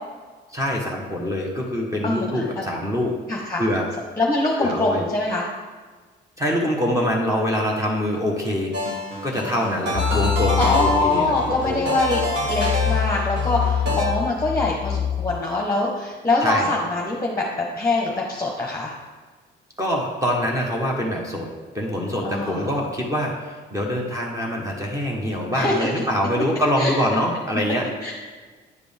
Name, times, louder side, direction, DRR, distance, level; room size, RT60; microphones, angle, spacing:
voice 1, 0.5-3.2 3.6-3.9 4.6-5.0 6.4-8.7 9.2-11.8 16.4-16.7 19.8-21.5 21.7-27.9, equal, 15° right, -3 dB, 1.2 m, -24 dB
voice 2, 2.0-2.6 3.3-3.6 4.2-5.5 10.6-12.2 12.5-17.4 17.7-18.9 22.2-22.7 25.5-25.9 26.8-26.9 28.0-28.1, left 2 dB, 15° left, -1 dB, 1.1 m, -23 dB
sound 1, 8.7-14.1, left 1 dB, 60° right, 2.0 m, -27 dB
sound 2, 9.9-15.4, left 9 dB, 60° left, 0.4 m, -26 dB
9.4 x 5.0 x 3.5 m, 1.4 s
cardioid pair, 90°, 20 cm